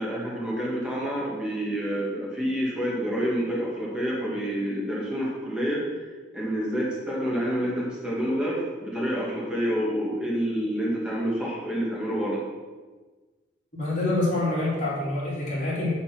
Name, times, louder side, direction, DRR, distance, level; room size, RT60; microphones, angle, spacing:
voice 1, 0.0-5.8 6.3-12.4, equal, 5° right, -6 dB, 2.0 m, -28 dB
voice 2, 13.7-15.9, left 2 dB, 40° left, -7 dB, 2.6 m, -26 dB
8.5 x 4.2 x 6.0 m, 1.3 s
head